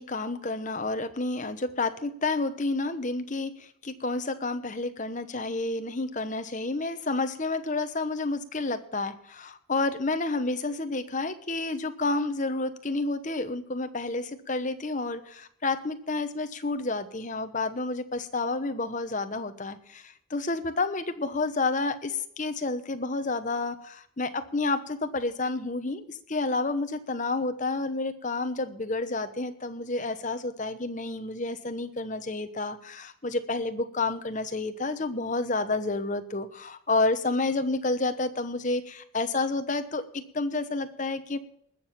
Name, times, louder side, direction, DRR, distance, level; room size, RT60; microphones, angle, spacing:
voice 1, 0.0-3.5 3.8-41.4, left 3 dB, 35° left, 9 dB, 1.0 m, -30 dB
20.0 x 7.1 x 5.8 m, 0.67 s
head